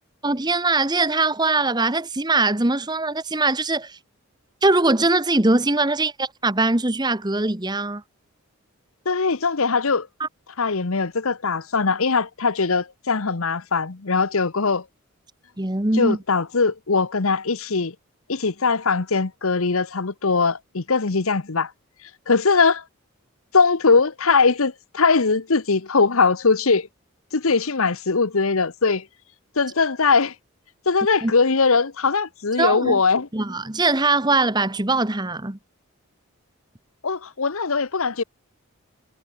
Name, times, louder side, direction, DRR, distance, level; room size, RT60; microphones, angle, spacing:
voice 1, 0.2-4.0 4.6-8.0 10.2-10.3 15.6-16.2 31.2-31.3 32.6-33.0 33.3-35.6, right 2 dB, 20° right, 1.1 m, -21 dB
voice 2, 9.0-10.1 10.6-14.8 16.0-17.9 18.3-21.7 22.3-22.8 23.5-26.9 27.3-29.1 29.6-30.3 30.9-33.3 37.0-38.2, left 4 dB, 70° left, 1.0 m, -21 dB
head